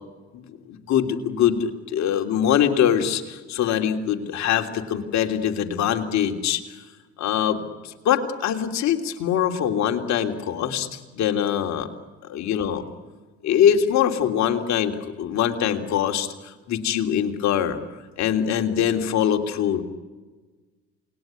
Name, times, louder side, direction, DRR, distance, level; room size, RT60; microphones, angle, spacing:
voice 1, 0.3-6.6 7.2-11.9 12.3-12.8 13.4-17.8 18.2-19.8, left 9 dB, 55° left, 4 dB, 3.2 m, -23 dB
28.5 x 20.5 x 9.5 m, 1.3 s
hypercardioid pair, 65°, 33 cm